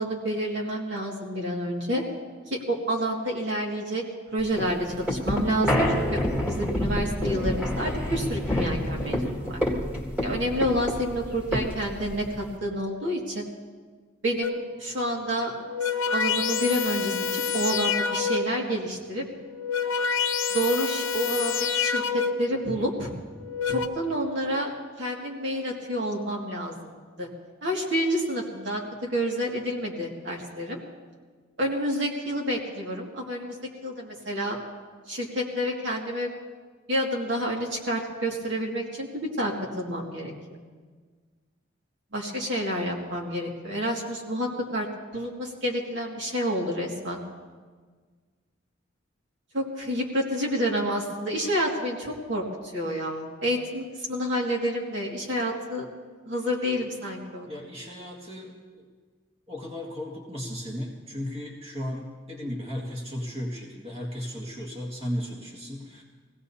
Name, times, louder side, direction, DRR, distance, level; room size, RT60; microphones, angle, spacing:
voice 1, 0.0-2.0 2.5-4.0 4.3-5.8 6.1-6.2 6.5-9.6 10.2-13.4 14.2-15.5 16.1-19.2 20.5-23.1 23.7-26.9 27.2-27.3 27.6-28.8 29.1-30.8 31.6-33.6 33.8-34.6 35.1-36.3 36.9-40.3 42.1-44.5 44.7-44.9 45.1-47.2 49.5-52.4 52.7-55.9 56.3-57.5, equal, 60° right, -1 dB, 2.1 m, -29 dB
sound 1, 4.4-12.6, left 1 dB, 10° right, 1.9 m, -28 dB
sound 2, 14.4-14.8 15.5-18.7 19.4-22.6 23.3-23.9, left 6 dB, 85° left, 0.7 m, -27 dB
voice 2, 57.5-58.9 59.5-66.0, equal, 30° right, -3 dB, 1.9 m, -35 dB
23.5 x 17.0 x 2.8 m, 1.5 s
head